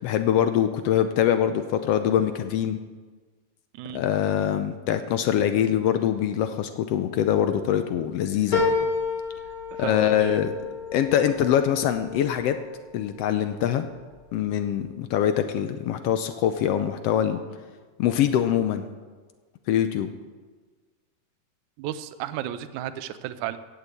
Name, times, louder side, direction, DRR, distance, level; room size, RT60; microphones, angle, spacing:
voice 1, 0.0-2.8 3.9-8.6 9.8-10.5 10.9-12.6 12.9-13.9 14.3-17.4 18.0-18.8 19.7-20.1, left 10 dB, 75° left, 9 dB, 1.4 m, -23 dB
sound 1, 8.5-13.3 13.8-14.5 14.8-14.9, left 4 dB, 35° left, 3.4 m, -30 dB
voice 2, 9.8-10.4 21.8-23.6, right 12 dB, 85° right, 12 dB, 2.1 m, -33 dB
16.0 x 6.8 x 8.3 m, 1.4 s
omnidirectional pair, 3.4 m